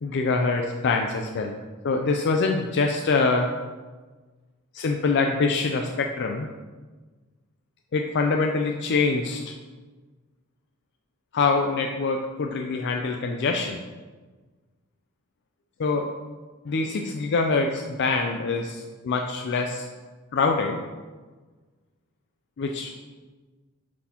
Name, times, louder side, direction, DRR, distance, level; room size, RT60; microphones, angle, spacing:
voice 1, 0.0-1.6 1.8-3.5 4.7-6.5 7.9-9.4 11.3-13.8 15.8-16.1 16.7-19.9 20.3-20.8 22.6-22.9, left 4 dB, 55° left, 3 dB, 0.4 m, -24 dB
10.5 x 4.1 x 2.9 m, 1.4 s
head